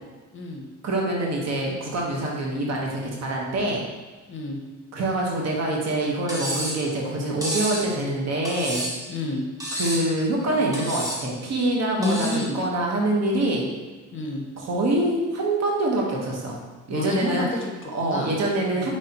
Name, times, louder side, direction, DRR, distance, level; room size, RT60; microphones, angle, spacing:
voice 1, 0.3-0.6 4.3-4.6 9.1-9.4 12.0-12.6 14.1-14.4 16.9-17.8 18.0-18.3 18.7-18.9, left 2 dB, 40° left, 2 dB, 0.7 m, -29 dB
voice 2, 0.8-3.8 4.9-8.8 9.7-12.3 12.5-13.6 14.6-16.6 16.9-17.5 17.9-18.9, right 1 dB, 60° right, -2 dB, 1.1 m, -25 dB
Cutlery silverware, 6.3-6.8 7.4-7.9 8.5-9.1 9.6-10.1 10.7-11.2 12.0-12.5, equal, 10° right, 1.2 m, -30 dB
5.2 x 3.2 x 2.8 m, 1.3 s
cardioid pair, 90°, 30 cm